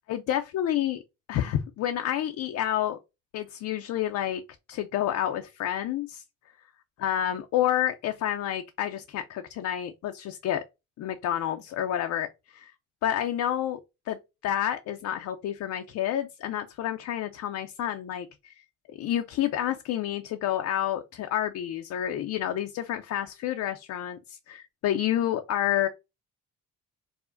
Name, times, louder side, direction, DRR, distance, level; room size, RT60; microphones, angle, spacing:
voice 1, 0.1-1.0 1.3-3.0 3.3-4.4 4.7-6.2 7.0-10.6 11.0-12.3 12.5-12.7 13.0-13.8 14.1-14.2 14.4-18.5 19.0-25.9, left 11 dB, 65° left, 0.5 m, -29 dB
4.7 x 2.1 x 2.4 m
cardioid pair, 90°, 30 cm